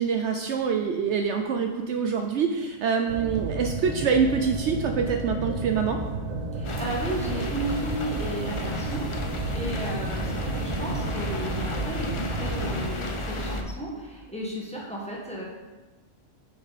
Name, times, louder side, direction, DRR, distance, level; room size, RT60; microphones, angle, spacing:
voice 1, 0.0-6.0, right 6 dB, 70° right, 5 dB, 0.8 m, -25 dB
sound 1, 3.1-12.8, right 3 dB, 85° right, 1.5 m, -32 dB
voice 2, 6.5-15.4, right 1 dB, 5° left, -4 dB, 1.4 m, -34 dB
sound 2, 6.6-13.6, left 1 dB, 35° left, 0.6 m, -33 dB
6.7 x 6.2 x 4.1 m, 1.2 s
omnidirectional pair, 1.4 m